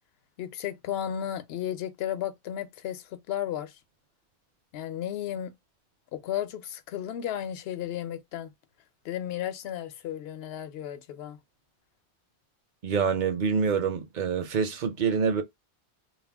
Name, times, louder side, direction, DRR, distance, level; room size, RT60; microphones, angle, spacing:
voice 1, 0.4-3.8 4.7-5.5 6.1-8.5 9.0-11.4, left 10 dB, 65° left, 0.8 m, -34 dB
voice 2, 12.8-15.4, right 6 dB, 55° right, 0.6 m, -26 dB
2.4 x 2.0 x 3.3 m
omnidirectional pair, 1.2 m